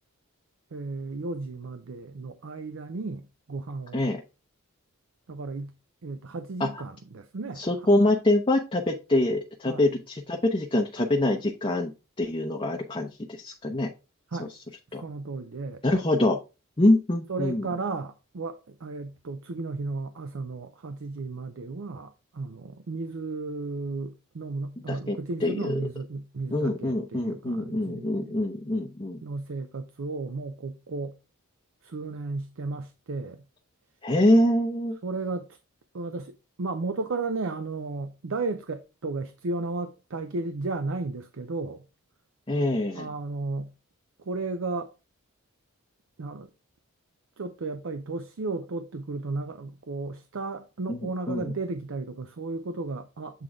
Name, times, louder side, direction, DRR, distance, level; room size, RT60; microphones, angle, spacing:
voice 1, 0.7-4.1 5.3-5.7 6.0-7.6 9.7-9.8 14.3-14.5 15.0-15.8 17.3-28.4 29.2-31.2 31.8-33.4 35.0-35.6 35.9-41.8 42.9-43.7 44.2-44.9 46.2-46.5 47.4-53.4, right 3 dB, 60° right, 0.5 m, -34 dB
voice 2, 7.6-11.9 12.2-13.9 14.4-14.5 14.9-15.0 15.8-16.4 16.8-17.7 24.9-25.8 26.5-29.2 34.0-35.0 42.5-43.1 50.9-51.0 51.3-51.4, left 1 dB, 25° left, 0.7 m, -25 dB
8.0 x 3.8 x 3.5 m
head